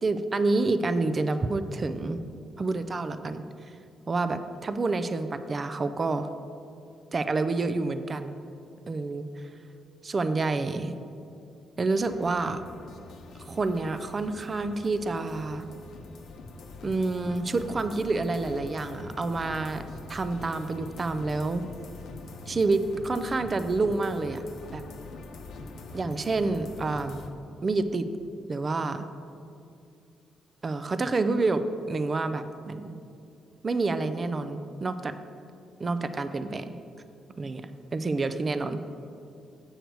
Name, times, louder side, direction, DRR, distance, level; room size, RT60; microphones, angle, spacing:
voice 1, 0.0-2.2 2.6-3.8 4.1-6.3 7.1-8.4 8.9-9.5 10.0-11.0 11.8-12.6 13.4-15.7 16.8-19.8 20.1-21.6 22.5-24.4 24.7-24.8 25.9-27.3 27.6-28.1 28.5-29.1 30.6-33.0 33.6-35.1 35.8-36.7 37.4-38.8, right 3 dB, 30° right, 11 dB, 0.3 m, -28 dB
sound 1, 12.0-27.3, left 3 dB, 65° left, 0.7 m, -44 dB
8.0 x 6.5 x 4.6 m, 2.5 s
cardioid pair, 140°, 0 cm